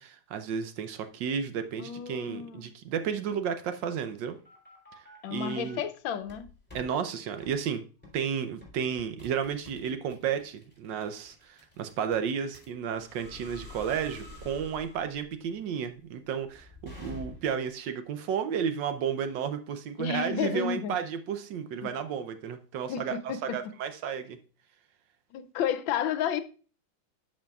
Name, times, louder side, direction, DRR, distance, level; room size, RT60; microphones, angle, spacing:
voice 1, 0.0-4.4 5.3-5.8 6.7-7.8 8.1-24.4, right 7 dB, 70° right, 1.3 m, -32 dB
voice 2, 1.8-2.7 5.2-6.5 20.0-21.0 21.8-21.9 22.9-23.4 25.3-26.4, left 8 dB, 80° left, 1.4 m, -31 dB
sound 1, 4.0-5.8 6.2-6.9 7.4-7.6 8.0-8.2 8.6-17.7, left 2 dB, 5° left, 3.1 m, -49 dB
12.5 x 5.2 x 2.3 m
omnidirectional pair, 2.2 m